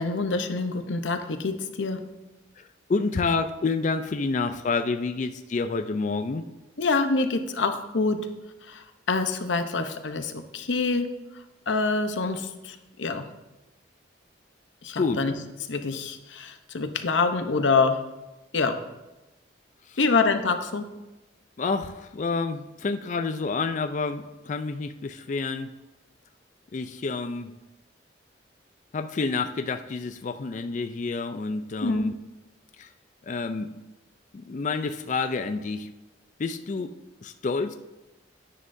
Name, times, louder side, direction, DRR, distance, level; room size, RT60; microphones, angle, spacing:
voice 1, 0.0-2.0 6.8-8.2 8.6-11.1 11.7-13.3 14.8-15.3 15.7-18.0 18.5-18.8 20.0-20.9 31.8-32.1, left 4 dB, 80° left, 8 dB, 0.8 m, -26 dB
voice 2, 2.6-6.5 15.0-15.2 19.9-20.0 21.6-25.7 26.7-27.5 28.9-32.1 32.8-32.9 33.2-33.7 34.3-35.9 36.4-36.9 37.2-37.7, left 4 dB, 40° left, 8 dB, 0.4 m, -29 dB
9.8 x 9.6 x 2.6 m, 1.0 s
head